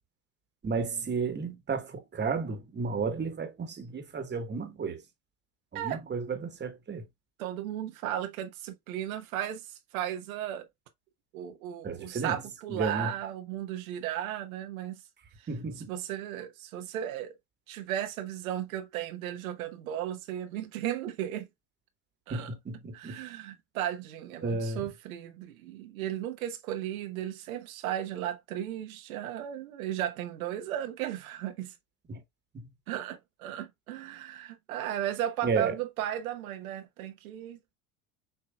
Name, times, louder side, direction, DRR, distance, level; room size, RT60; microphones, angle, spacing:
voice 1, 0.6-5.0 5.7-7.0 11.8-12.4 12.7-13.1 15.5-15.9 22.3-23.2 24.4-24.9 32.1-32.2 32.5-32.7 35.4-35.7, right 4 dB, 25° right, 1.4 m, -33 dB
voice 2, 7.4-10.7 11.3-14.9 15.4-15.5 15.9-17.3 17.7-21.5 22.3-22.5 22.9-31.7 32.9-37.7, right 11 dB, 85° right, 1.1 m, -35 dB
6.7 x 2.8 x 2.2 m
hypercardioid pair, 85°, 41 cm